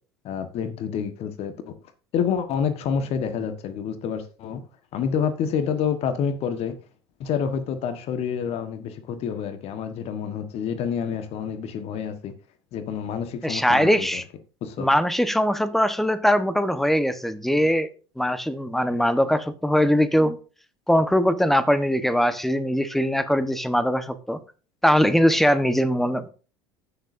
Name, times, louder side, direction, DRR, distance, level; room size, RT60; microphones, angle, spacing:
voice 1, 0.2-1.8 2.1-4.6 4.9-6.8 7.2-12.3 12.7-14.2 14.6-14.9, left 7 dB, 50° left, 1.4 m, -28 dB
voice 2, 13.4-14.2 14.8-17.9 18.2-20.4 20.9-24.4 24.8-26.3, equal, ahead, 1.1 m, -21 dB
15.0 x 6.7 x 2.6 m
hypercardioid pair, 70°, 13 cm